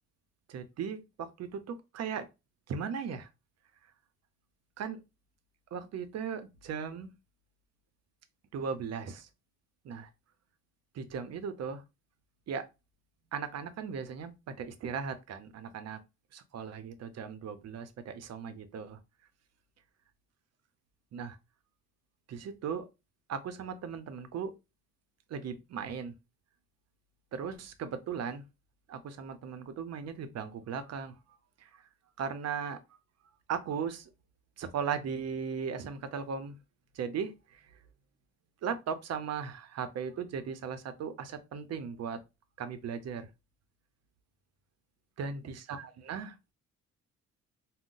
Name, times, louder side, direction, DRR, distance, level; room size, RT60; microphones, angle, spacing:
voice 1, 0.5-2.3 2.7-3.3 4.8-5.0 5.7-7.1 8.5-9.3 9.8-10.1 10.9-11.8 12.5-12.7 13.3-16.0 16.3-19.0 21.1-21.4 22.3-22.9 23.3-24.5 25.3-26.1 27.3-28.4 28.9-31.1 31.6-31.9 32.2-32.8 33.5-34.1 34.6-36.6 36.9-37.8 38.6-42.2 42.6-43.3 45.2-46.4, right 6 dB, 55° right, 0.6 m, -37 dB
3.7 x 2.1 x 2.5 m
cardioid pair, 90°, 30 cm